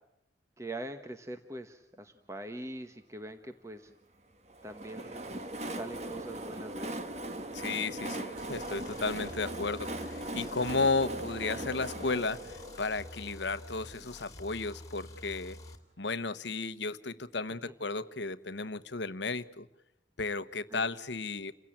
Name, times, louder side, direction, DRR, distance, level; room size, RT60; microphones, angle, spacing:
voice 1, 0.6-3.9 4.6-5.3 5.7-7.0 20.7-20.8, right 1 dB, 15° right, 7 dB, 1.1 m, -42 dB
Train, 4.5-14.2, right 1 dB, 35° right, 1.5 m, -40 dB
voice 2, 7.5-15.6 16.0-19.7 20.2-21.5, left 3 dB, 70° left, 14 dB, 1.1 m, -34 dB
sound 1, 8.4-15.8, left 1 dB, 20° left, 2.4 m, -48 dB
29.0 x 17.0 x 8.7 m, 0.88 s
head